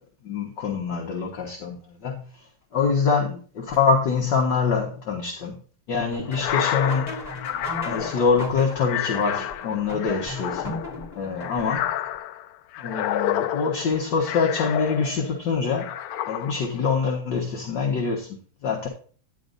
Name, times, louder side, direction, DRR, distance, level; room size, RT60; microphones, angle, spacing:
voice 1, 0.2-2.2 2.7-5.6 5.9-7.2 7.9-10.8 11.1-11.9 12.8-15.9 16.3-18.9, left 5 dB, 55° left, 2.0 m, -25 dB
sound 1, 6.1-12.0, left 1 dB, 15° left, 3.4 m, -37 dB
sound 2, 6.3-15.4 15.8-16.8, left 11 dB, 80° left, 1.6 m, -30 dB
10.5 x 10.5 x 2.6 m
omnidirectional pair, 2.4 m